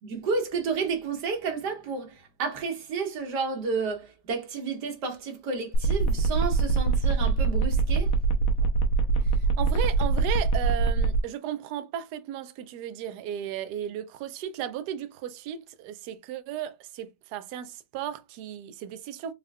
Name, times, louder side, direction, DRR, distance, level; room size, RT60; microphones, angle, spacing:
voice 1, 0.0-8.1, right 4 dB, 55° right, 1.5 m, -31 dB
sound 1, 5.7-11.2, right 4 dB, 90° left, 1.6 m, -23 dB
voice 2, 9.2-19.3, right 10 dB, 85° right, 0.8 m, -35 dB
4.1 x 3.6 x 2.3 m
omnidirectional pair, 2.3 m